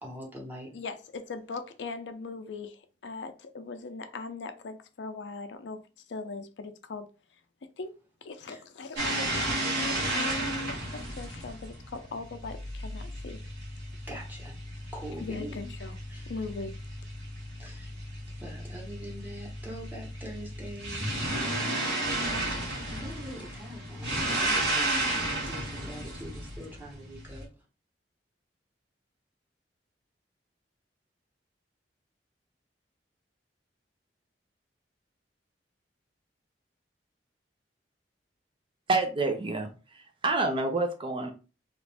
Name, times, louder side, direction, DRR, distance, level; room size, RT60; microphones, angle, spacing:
voice 1, 0.0-0.7 8.5-8.9 14.1-15.7 16.1-16.4 17.5-22.1 22.5-27.7, equal, 10° right, 1.1 m, -44 dB
voice 2, 0.7-5.8 6.1-7.1 7.8-7.9 8.2-13.4 15.2-15.9 16.3-16.7, left 3 dB, 85° left, 0.5 m, -39 dB
sound 1, 9.0-27.4, right 1 dB, 85° right, 1.5 m, -33 dB
voice 3, 38.9-39.7 40.2-41.3, right 3 dB, 30° right, 0.5 m, -27 dB
2.9 x 2.5 x 3.3 m
head